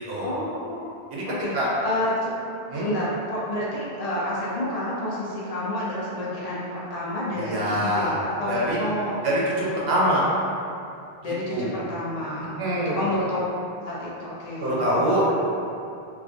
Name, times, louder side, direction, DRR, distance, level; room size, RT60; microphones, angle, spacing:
voice 1, 0.2-0.9 1.3-1.5 1.8-2.3 2.7-9.4 9.7-10.2 11.2-12.6 13.0-13.4 13.8-15.0, left 1 dB, 50° left, -6 dB, 0.5 m, -29 dB
voice 2, 7.3-8.2 8.5-8.8 9.2-10.2 11.2-11.7 12.6-13.1 14.6-15.3, right 1 dB, 85° right, -6 dB, 0.8 m, -24 dB
2.4 x 2.1 x 2.5 m, 2.6 s
omnidirectional pair, 1.1 m